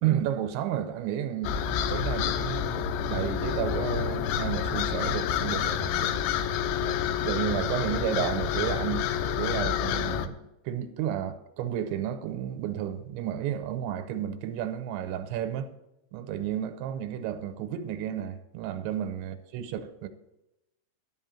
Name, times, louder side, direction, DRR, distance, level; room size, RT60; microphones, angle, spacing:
voice 1, 0.0-6.1 6.8-7.0 7.2-9.1 9.4-15.7 16.1-20.1, right 10 dB, 90° right, 3.0 m, -32 dB
sound 1, 1.4-10.3, left 8 dB, 85° left, 3.0 m, -28 dB
12.0 x 5.7 x 7.2 m
omnidirectional pair, 5.3 m